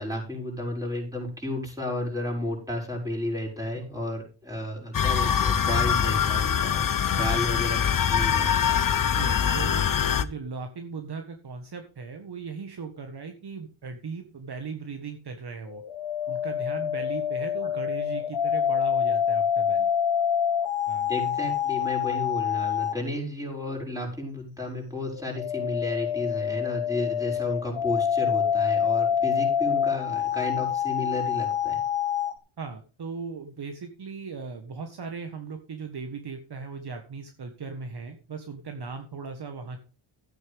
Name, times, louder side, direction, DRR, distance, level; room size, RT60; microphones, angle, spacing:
voice 1, 0.0-6.9 7.2-7.8 8.1-8.6 21.1-31.8, left 1 dB, 5° right, 0 dB, 6.5 m, -32 dB
sound 1, 4.9-10.2, left 8 dB, 40° left, 0.9 m, -24 dB
voice 2, 9.0-15.8 16.3-19.9 20.9-21.1 32.6-39.8, right 5 dB, 50° right, 6 dB, 1.6 m, -38 dB
sound 2, 15.7-23.0 25.0-32.3, left 8 dB, 70° left, 1.7 m, -26 dB
13.5 x 9.3 x 3.6 m, 0.35 s
cardioid pair, 105°, 50 cm